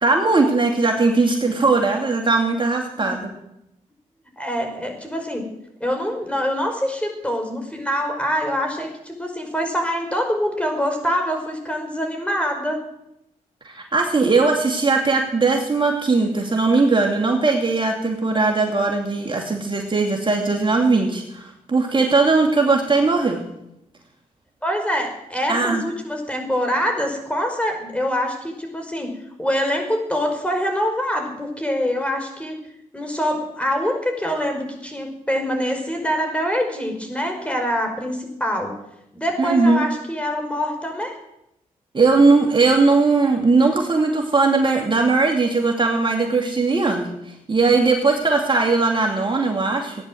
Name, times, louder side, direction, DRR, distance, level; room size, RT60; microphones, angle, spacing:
voice 1, 0.0-3.3 13.6-23.4 25.5-25.8 39.4-39.8 41.9-50.0, right 3 dB, 35° right, 2 dB, 2.4 m, -19 dB
voice 2, 4.4-5.4 5.8-12.8 24.6-29.1 29.4-32.6 32.9-38.8 39.1-41.1, equal, 10° left, 3 dB, 5.3 m, -25 dB
15.5 x 10.0 x 7.8 m, 0.84 s
supercardioid pair, 50°, 15 cm